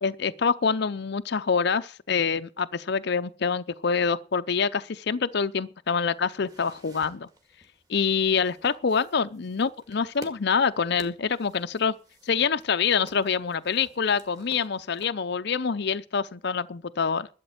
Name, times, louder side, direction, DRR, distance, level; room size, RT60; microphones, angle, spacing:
voice 1, 0.0-7.3 7.9-11.9 12.2-17.3, left 6 dB, 55° left, 0.6 m, -26 dB
sound 1, 5.9-15.1, right 1 dB, 20° right, 2.1 m, -52 dB
12.5 x 8.2 x 7.8 m
head